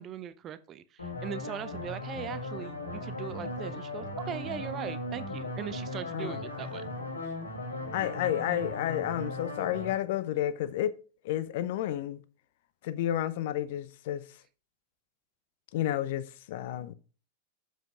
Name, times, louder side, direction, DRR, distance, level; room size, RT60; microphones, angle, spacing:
voice 1, 0.0-6.8, right 9 dB, 30° right, 0.6 m, -40 dB
sound 1, 1.0-9.9, left 2 dB, 80° left, 2.5 m, -37 dB
voice 2, 6.1-6.4 6.8-6.9 7.9-11.0 11.2-12.2 12.8-14.3 15.7-16.9, left 12 dB, 50° left, 0.6 m, -31 dB
7.3 x 5.7 x 4.8 m
figure-of-eight pair, 90°, 0 cm